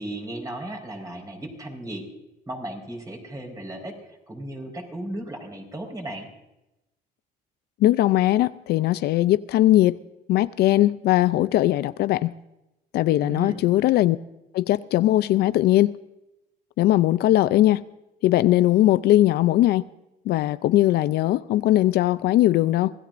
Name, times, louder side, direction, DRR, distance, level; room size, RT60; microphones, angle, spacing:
voice 1, 0.0-2.1 2.5-6.3 13.2-13.6, right 1 dB, 20° right, 4.6 m, -35 dB
voice 2, 7.8-10.0 10.3-12.3 12.9-14.2 14.5-16.0 16.8-17.8 18.2-19.8 20.3-22.9, left 14 dB, 70° left, 0.5 m, -20 dB
25.5 x 17.5 x 2.6 m
cardioid pair, 110°, 17 cm